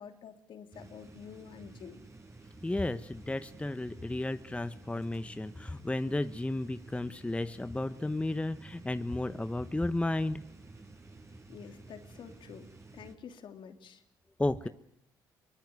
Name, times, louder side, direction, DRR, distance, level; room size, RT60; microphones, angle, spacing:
voice 1, 0.0-2.0 11.5-14.0, left 7 dB, 60° left, 7 dB, 3.1 m, -49 dB
sound 1, 0.7-13.1, right 2 dB, 30° right, 7.1 m, -52 dB
voice 2, 2.6-10.4 14.4-14.7, left 2 dB, 15° left, 12 dB, 1.0 m, -33 dB
23.5 x 20.5 x 9.4 m, 0.73 s
hypercardioid pair, 55°, 9 cm